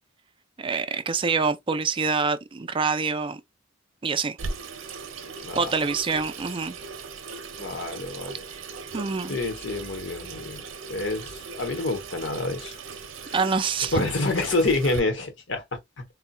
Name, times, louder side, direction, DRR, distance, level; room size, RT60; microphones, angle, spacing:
voice 1, 0.6-3.4 4.0-4.4 5.6-6.8 8.9-9.4 13.3-13.9, right 4 dB, 25° right, 0.4 m, -26 dB
Water tap faucet / Sink (filling or washing), 4.4-15.0, right 4 dB, 75° right, 0.6 m, -39 dB
voice 2, 7.6-8.5 9.3-12.8 13.2-13.3 13.9-16.0, left 2 dB, 65° left, 1.0 m, -28 dB
4.1 x 2.2 x 2.3 m
head